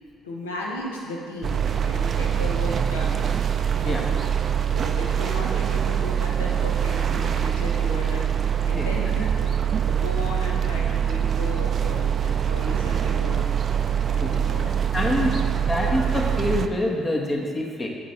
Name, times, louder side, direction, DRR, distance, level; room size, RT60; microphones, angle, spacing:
voice 1, 0.2-3.4 3.8-4.0 4.7-8.3 8.6-9.5 9.9-13.4 14.1-14.7, left 2 dB, 90° left, -2 dB, 0.9 m, -35 dB
sound 1, 1.4-16.7, right 8 dB, 50° right, 0.3 m, -24 dB
voice 2, 14.9-17.9, left 1 dB, 35° left, 0 dB, 1.1 m, -26 dB
8.2 x 3.9 x 4.3 m, 2.2 s
hypercardioid pair, 50°, 0 cm